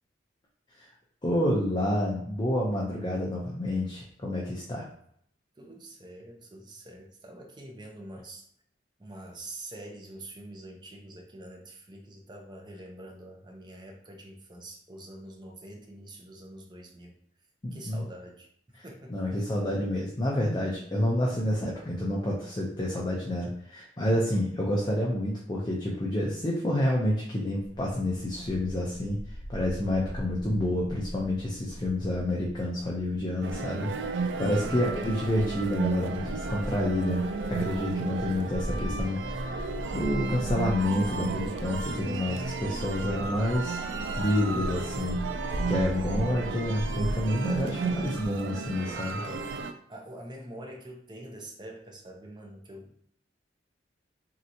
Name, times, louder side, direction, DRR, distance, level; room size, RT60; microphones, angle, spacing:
voice 1, 1.2-4.8 17.6-18.1 19.1-29.2 29.5-39.7 39.9-43.8 44.1-45.2 45.5-49.2, left 1 dB, 25° left, -3 dB, 0.5 m, -29 dB
voice 2, 5.6-8.4 9.0-17.2 17.7-19.2 34.5-34.9 49.1-49.6 49.9-53.0, right 1 dB, 25° right, 1 dB, 0.6 m, -45 dB
Bark, 27.5-46.7, equal, 75° left, 0.7 m, -43 dB
sound 1, 33.4-49.7, right 3 dB, 85° right, 0.4 m, -33 dB
3.2 x 2.8 x 2.7 m, 0.67 s
head